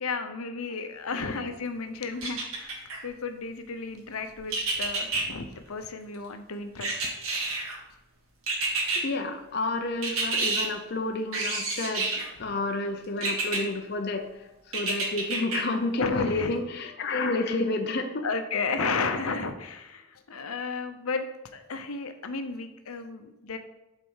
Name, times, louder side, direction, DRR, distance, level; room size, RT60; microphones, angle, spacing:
voice 1, 0.0-6.9 12.4-12.5 16.0-16.5 18.2-21.3 21.5-23.6, left 4 dB, 85° left, 8 dB, 0.7 m, -33 dB
sound 1, 2.2-3.0 4.5-5.2 6.8-7.8 8.5-9.0 10.0-10.7 11.3-12.3 13.2-13.6 14.7-15.6 16.1-16.2, right 3 dB, 80° right, 1.9 m, -28 dB
voice 2, 9.0-12.1 12.4-18.2, left 2 dB, 50° left, 5 dB, 0.6 m, -30 dB
7.9 x 4.1 x 5.5 m, 0.96 s
head